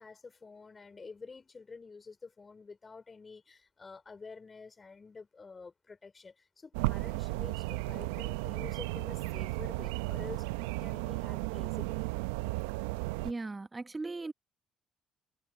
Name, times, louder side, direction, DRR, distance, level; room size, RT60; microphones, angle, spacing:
voice 1, 0.0-12.0, left 4 dB, 35° left, 3.7 m, -49 dB
sound 1, 6.7-13.3, right 22 dB, 80° right, 0.9 m, -34 dB
voice 2, 13.2-14.3, right 3 dB, 25° right, 1.2 m, -38 dB
hypercardioid pair, 50°, 0 cm